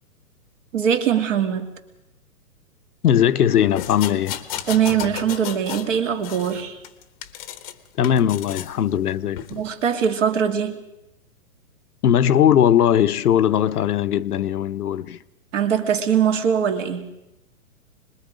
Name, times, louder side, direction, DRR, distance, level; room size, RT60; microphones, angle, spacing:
voice 1, 0.7-1.7 4.7-6.8 9.5-10.8 15.5-17.1, right 8 dB, 55° right, 2.7 m, -21 dB
voice 2, 3.0-4.4 8.0-9.4 12.0-15.2, left 10 dB, 80° left, 0.9 m, -19 dB
sound 1, 3.8-5.9 6.2-7.7 8.0-8.7 9.4-9.5, left 11 dB, 25° left, 0.9 m, -33 dB
25.5 x 21.0 x 5.1 m
hypercardioid pair, 155°, 45 cm